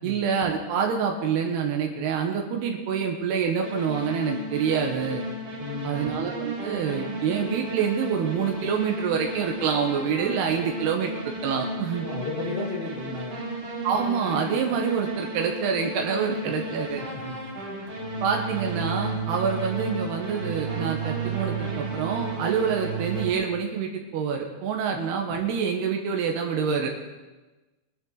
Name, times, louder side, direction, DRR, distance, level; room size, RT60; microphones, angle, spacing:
voice 1, 0.0-5.2 5.8-12.0 13.8-17.0 18.2-26.9, right 6 dB, 85° right, 2 dB, 3.2 m, -26 dB
sound 1, 3.6-23.3, right 2 dB, 40° right, 3.6 m, -33 dB
voice 2, 5.6-6.3 12.0-13.5 16.4-17.5, left 3 dB, 60° left, -5 dB, 0.6 m, -36 dB
21.0 x 12.0 x 3.9 m, 1.2 s
omnidirectional pair, 4.5 m